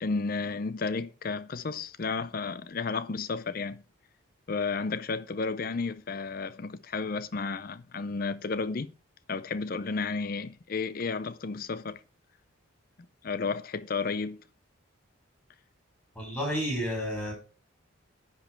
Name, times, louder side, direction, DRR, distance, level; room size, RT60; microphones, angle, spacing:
voice 1, 0.0-3.8 4.5-8.9 9.3-12.0 13.2-14.4, left 4 dB, 45° left, 0.5 m, -32 dB
voice 2, 16.1-17.3, equal, 10° left, 4.8 m, -31 dB
10.0 x 5.3 x 4.5 m
head